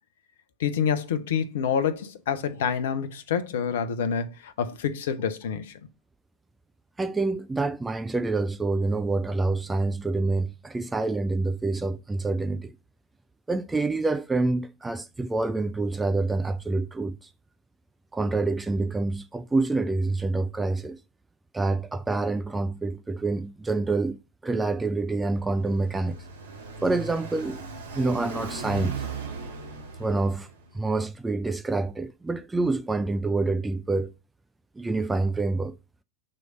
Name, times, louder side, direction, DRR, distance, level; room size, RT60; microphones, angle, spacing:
voice 1, 0.6-5.8, left 7 dB, 55° left, 0.6 m, -27 dB
voice 2, 7.0-12.7 13.5-17.3 18.1-21.0 21.5-26.2 26.8-27.6 27.9-29.0 30.0-30.5 30.7-34.1 34.8-35.8, right 3 dB, 10° right, 0.3 m, -27 dB
Car passing by, 25.1-30.7, right 5 dB, 65° right, 1.2 m, -38 dB
6.5 x 3.2 x 4.9 m
figure-of-eight pair, 90°, 0 cm